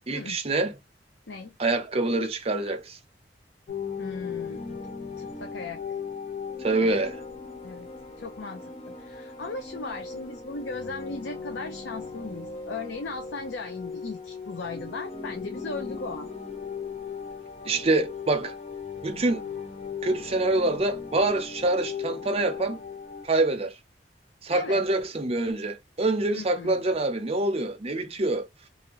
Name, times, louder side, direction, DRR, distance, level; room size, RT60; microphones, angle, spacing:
voice 1, 0.1-0.7 1.6-3.0 6.6-7.2 17.6-18.5 19.0-19.4 20.0-22.8 23.2-23.8 24.4-28.5, right 2 dB, 35° right, 0.7 m, -25 dB
sound 1, 3.7-23.3, left 5 dB, 40° left, 0.9 m, -38 dB
voice 2, 4.0-4.8 5.2-5.8 6.8-7.0 7.6-7.9 8.2-8.7 9.0-16.3 24.5-24.8 26.3-26.8, left 3 dB, 85° left, 0.6 m, -37 dB
2.7 x 2.6 x 2.9 m
head